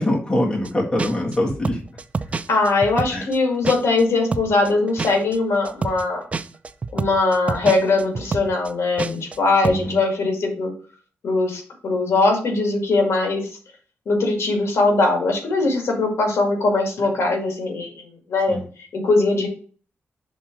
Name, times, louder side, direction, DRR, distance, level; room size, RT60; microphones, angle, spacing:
voice 1, 0.0-1.8 3.1-3.2 9.6-10.0 18.5-18.6, left 1 dB, 20° left, -2 dB, 1.7 m, -23 dB
sound 1, 0.6-0.7 1.0-4.0 4.3-9.4 9.6-9.9, right 4 dB, 25° right, 0.4 m, -28 dB
voice 2, 2.5-6.2 6.9-10.7 11.2-13.5 14.1-18.6 18.9-19.5, left 3 dB, 65° left, 2 dB, 2.0 m, -21 dB
6.1 x 3.7 x 5.9 m, 0.42 s
wide cardioid pair, 150°, 5 cm